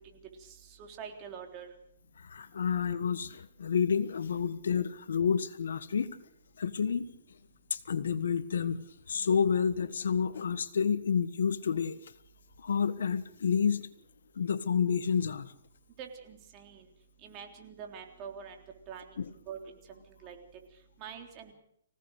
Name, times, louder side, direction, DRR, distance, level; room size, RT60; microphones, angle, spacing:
voice 1, 0.0-1.7 16.0-16.9 17.2-18.6 18.9-19.8 20.1-20.4 21.0-21.5, right 7 dB, 25° right, 4 dB, 3.6 m, -45 dB
voice 2, 2.2-6.2 6.6-7.1 7.7-8.8 9.1-12.0 12.6-13.9 14.4-15.5 19.2-19.3, left 6 dB, 75° left, 13 dB, 1.4 m, -29 dB
25.5 x 17.0 x 6.6 m, 0.72 s
hypercardioid pair, 155°, 0 cm